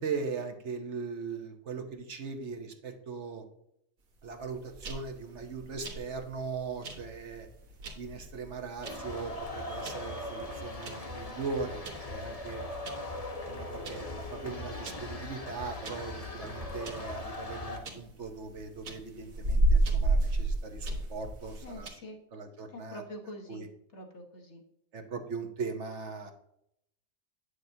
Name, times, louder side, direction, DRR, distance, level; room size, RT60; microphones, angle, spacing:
voice 1, 0.0-3.4 4.2-7.5 8.0-12.6 13.4-21.9 22.3-23.0 23.5-23.7 24.9-26.3, right 5 dB, 60° right, 5 dB, 1.2 m, -39 dB
sound 1, 4.3-21.9, right 1 dB, 80° right, 1.6 m, -33 dB
sound 2, 8.8-17.8, left 2 dB, 30° left, 1.1 m, -40 dB
voice 2, 21.6-22.2 22.7-23.7 23.9-24.6, left 1 dB, 55° left, 2 dB, 1.5 m, -45 dB
9.0 x 6.4 x 2.7 m, 0.75 s
omnidirectional pair, 1.4 m